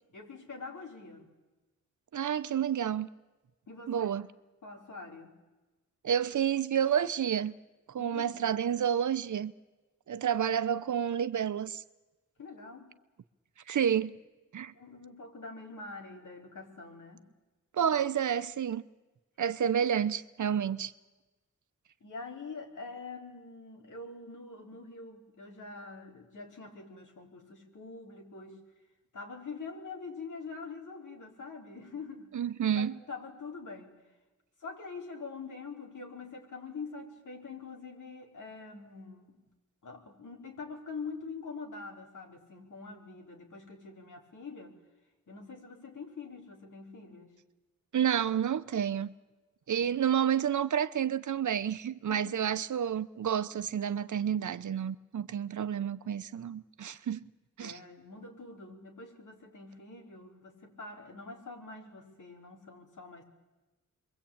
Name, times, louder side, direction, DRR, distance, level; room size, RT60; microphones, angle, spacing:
voice 1, 0.1-1.3 3.7-4.1 4.6-5.3 8.0-8.5 12.4-12.9 14.7-17.3 22.0-28.6 29.1-32.3 32.7-33.9 34.6-39.4 39.8-44.8 45.3-47.4 49.8-50.0 52.1-52.5 57.6-63.2, left 4 dB, 80° left, 4.7 m, -45 dB
voice 2, 2.1-3.1 3.9-4.3 6.0-7.6 7.9-9.5 10.1-11.8 13.7-14.2 14.5-14.7 17.7-18.8 19.4-20.9 32.3-32.9 47.9-49.1 49.7-57.2 57.6-57.8, right 9 dB, 75° right, 0.9 m, -30 dB
28.5 x 23.0 x 8.8 m
wide cardioid pair, 130°, 30 cm